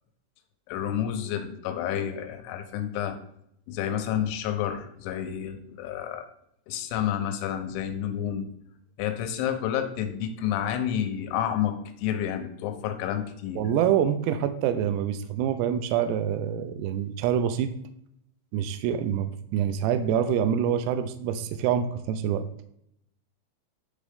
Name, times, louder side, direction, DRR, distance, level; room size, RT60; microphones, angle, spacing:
voice 1, 0.7-3.2 3.7-6.3 6.7-8.5 9.0-13.6, left 9 dB, 85° left, 7 dB, 3.1 m, -30 dB
voice 2, 13.6-17.7 18.5-22.4, right 9 dB, 85° right, 9 dB, 2.4 m, -26 dB
9.6 x 3.7 x 3.5 m, 0.72 s
omnidirectional pair, 5.3 m